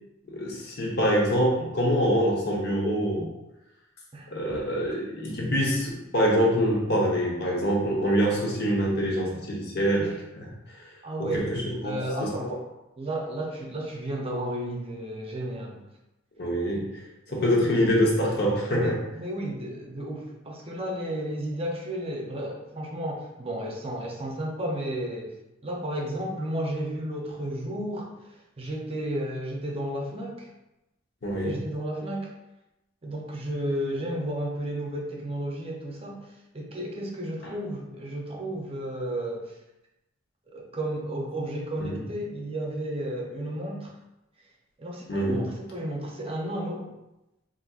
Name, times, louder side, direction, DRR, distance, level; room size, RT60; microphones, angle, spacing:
voice 1, 0.3-3.3 4.3-10.5 11.3-12.5 16.4-17.0 17.3-19.0 31.2-31.6 41.8-42.0 45.1-45.4, equal, 55° left, -2 dB, 0.9 m, -25 dB
voice 2, 11.0-11.5 11.8-12.7 13.0-15.8 17.3-17.7 18.7-25.4 25.6-30.5 31.4-32.3 33.0-39.5 40.5-43.9 44.8-46.9, right 1 dB, 30° right, -1 dB, 0.6 m, -33 dB
4.0 x 2.6 x 2.3 m, 0.94 s
head